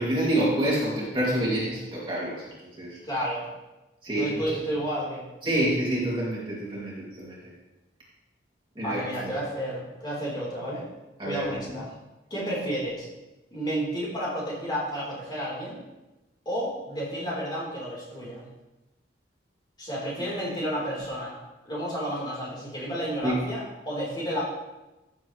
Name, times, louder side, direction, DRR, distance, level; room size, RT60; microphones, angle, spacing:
voice 1, 0.0-3.0 4.0-4.3 5.4-7.4 8.8-9.3 11.2-11.8 23.2-23.4, right 1 dB, 25° right, -6 dB, 2.5 m, -27 dB
voice 2, 3.1-3.5 4.2-5.2 8.8-10.9 11.2-11.9 12.3-13.1 13.5-15.8 16.5-18.4 19.8-24.4, equal, 25° left, -6 dB, 3.7 m, -31 dB
15.0 x 7.2 x 3.1 m, 1.0 s
head